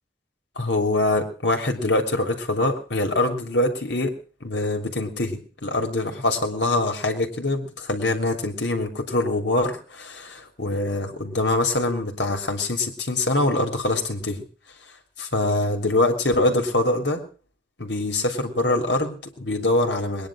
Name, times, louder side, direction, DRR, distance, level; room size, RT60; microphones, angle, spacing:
voice 1, 0.6-4.1 4.4-14.4 15.2-17.2 17.8-20.3, left 2 dB, 75° left, 4 dB, 3.2 m, -24 dB
21.0 x 10.5 x 6.3 m, 0.40 s
head